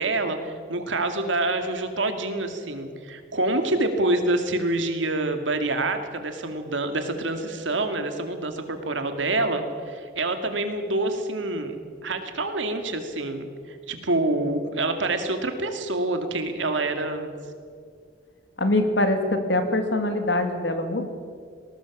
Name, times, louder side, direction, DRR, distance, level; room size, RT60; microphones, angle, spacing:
voice 1, 0.0-11.8 12.0-17.3, right 2 dB, 80° right, 6 dB, 2.3 m, -27 dB
voice 2, 18.6-21.1, left 1 dB, 65° left, 6 dB, 2.4 m, -23 dB
19.5 x 18.5 x 7.3 m, 2.1 s
head